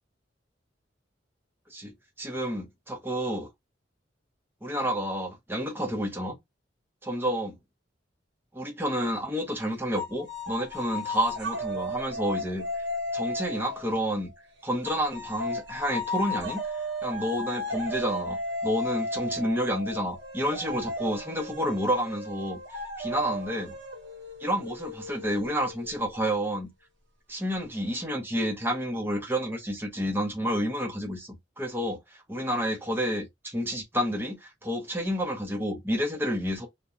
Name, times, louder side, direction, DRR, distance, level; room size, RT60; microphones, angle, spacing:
voice 1, 1.7-3.5 4.6-6.4 7.0-7.6 8.5-12.8 13.1-14.3 14.6-16.6 17.0-22.6 23.0-23.7 24.4-26.7 27.3-36.7, equal, 10° right, 0.7 m, -30 dB
sound 1, 9.9-14.3 14.8-26.2, left 1 dB, 80° right, 0.9 m, -35 dB
2.7 x 2.2 x 2.4 m
head